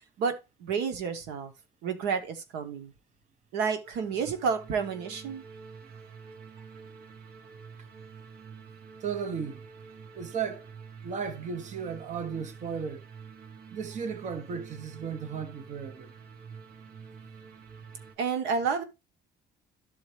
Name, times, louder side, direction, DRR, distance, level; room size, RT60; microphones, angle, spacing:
voice 1, 0.6-1.5 1.8-2.9 3.5-5.4 18.2-18.8, right 6 dB, 90° right, 1.3 m, -30 dB
sound 1, 3.8-18.2, right 6 dB, 65° right, 1.2 m, -48 dB
voice 2, 9.0-9.6 10.1-10.6 11.0-13.0 13.7-16.1, right 6 dB, 45° right, 1.0 m, -35 dB
12.5 x 4.2 x 3.3 m
cardioid pair, 110°, 17 cm